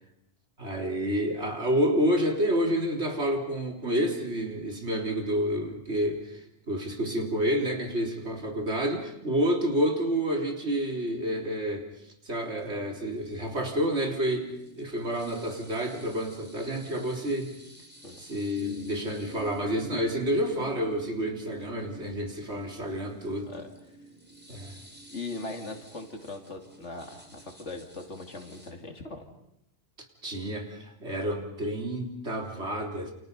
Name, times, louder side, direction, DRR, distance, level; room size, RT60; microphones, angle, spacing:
voice 1, 0.6-6.4 6.7-11.9 12.2-17.5 18.2-23.5 24.5-24.8 30.2-33.1, equal, 65° right, 1 dB, 4.0 m, -29 dB
sound 1, 12.6-28.7, equal, 10° right, 3.2 m, -48 dB
voice 2, 25.1-29.3, left 3 dB, 75° left, 3 dB, 3.1 m, -40 dB
29.0 x 28.5 x 5.5 m, 0.79 s
omnidirectional pair, 1.2 m